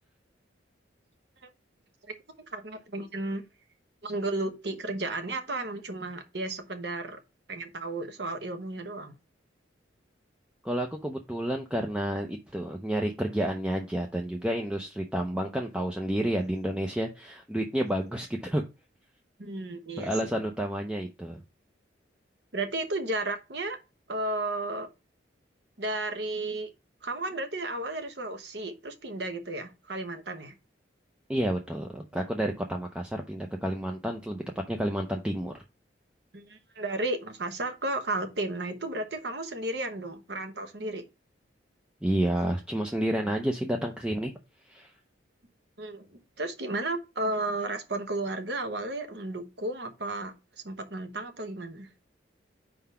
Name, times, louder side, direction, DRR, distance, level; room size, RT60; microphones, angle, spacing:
voice 1, 2.5-3.5 4.0-7.2 7.5-9.1 19.4-20.3 22.5-23.8 24.1-24.9 25.8-26.7 27.0-30.6 36.3-41.0 45.8-50.3 50.6-51.9, right 2 dB, 60° right, 1.0 m, -33 dB
voice 2, 10.6-18.6 20.0-21.4 31.3-35.5 42.0-44.3 44.6-44.9, right 1 dB, 5° right, 0.5 m, -30 dB
4.8 x 3.8 x 5.5 m
head